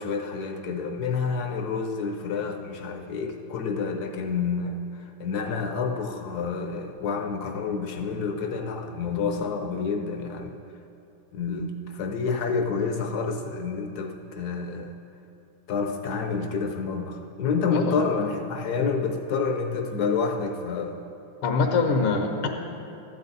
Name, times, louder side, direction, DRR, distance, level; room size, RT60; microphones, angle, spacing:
voice 1, 0.0-4.8 5.2-10.5 11.3-14.9 15.7-21.0 21.9-22.0, left 5 dB, 70° left, 5 dB, 1.0 m, -28 dB
voice 2, 21.4-22.5, left 4 dB, 85° left, 4 dB, 1.7 m, -24 dB
13.0 x 9.8 x 4.0 m, 2.7 s
omnidirectional pair, 2.2 m